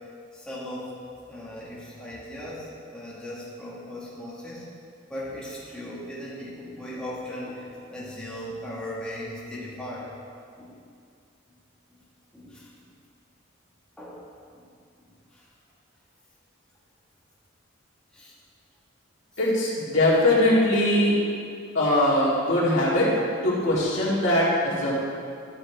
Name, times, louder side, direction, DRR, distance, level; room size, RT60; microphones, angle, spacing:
voice 1, 0.3-0.9 1.3-4.6 5.1-10.1 10.6-10.8 12.3-12.7 14.0-14.2 18.1-18.3, left 1 dB, 5° left, -9 dB, 1.6 m, -37 dB
voice 2, 19.4-21.1 21.7-23.1 23.4-24.9, left 1 dB, 65° left, -7 dB, 2.4 m, -21 dB
12.5 x 7.1 x 3.5 m, 2.3 s
head